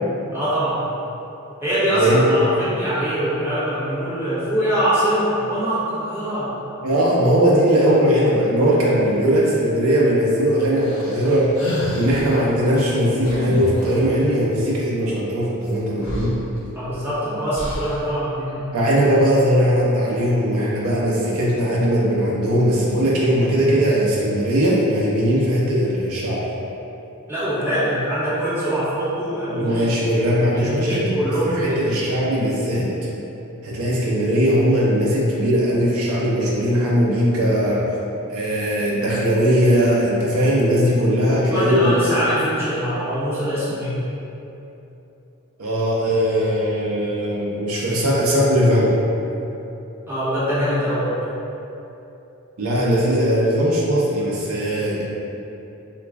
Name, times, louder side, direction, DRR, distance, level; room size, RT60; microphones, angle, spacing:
voice 1, 0.3-0.8 1.6-6.5 16.7-18.7 27.3-29.8 30.5-31.8 41.4-44.0 50.1-51.2, equal, 10° right, -13 dB, 1.0 m, -23 dB
voice 2, 2.0-2.4 6.8-11.6 11.9-16.4 18.7-26.4 29.5-31.0 31.6-32.9 33.6-37.8 38.3-42.0 45.6-48.9 52.6-55.0, equal, 85° right, -5 dB, 0.6 m, -19 dB
sound 1, 10.8-12.4 13.2-14.2 15.7-15.8 16.0-17.0 17.5-18.1, equal, 80° left, 0.8 m, -29 dB
3.2 x 2.4 x 3.3 m, 2.9 s
head